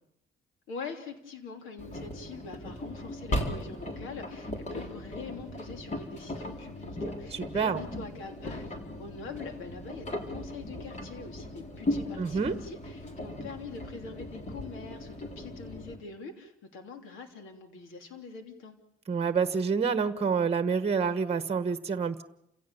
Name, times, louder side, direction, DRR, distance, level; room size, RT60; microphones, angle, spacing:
voice 1, 0.7-18.8, left 4 dB, 90° left, 5 dB, 3.2 m, -44 dB
Engine, 1.8-16.0, left 1 dB, 35° left, 4.1 m, -37 dB
voice 2, 7.3-7.8 12.2-12.5 19.1-22.2, right 5 dB, 30° right, 10 dB, 1.3 m, -28 dB
28.5 x 17.0 x 7.1 m, 0.79 s
cardioid pair, 90°, 20 cm